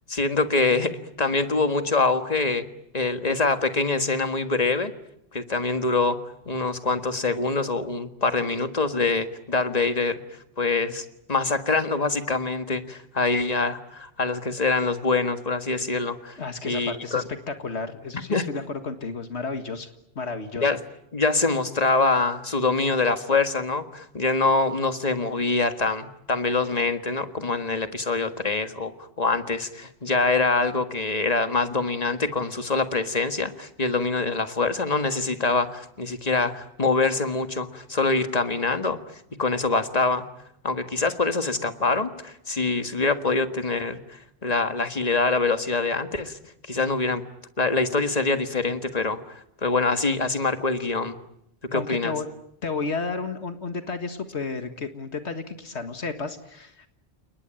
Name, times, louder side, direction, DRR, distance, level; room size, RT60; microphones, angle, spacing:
voice 1, 0.1-2.7 2.9-4.9 5.3-6.2 6.5-10.2 10.6-16.4 16.6-17.2 18.3-18.5 20.6-20.8 21.1-28.9 29.2-39.0 39.4-40.3 40.6-46.4 46.7-47.2 47.6-51.2 51.7-52.1, left 3 dB, 35° left, 8 dB, 1.8 m, -24 dB
voice 2, 16.4-19.9 20.2-20.7 51.7-52.3 52.6-56.9, left 4 dB, 85° left, 7 dB, 2.0 m, -32 dB
29.5 x 19.5 x 9.0 m, 0.79 s
omnidirectional pair, 1.1 m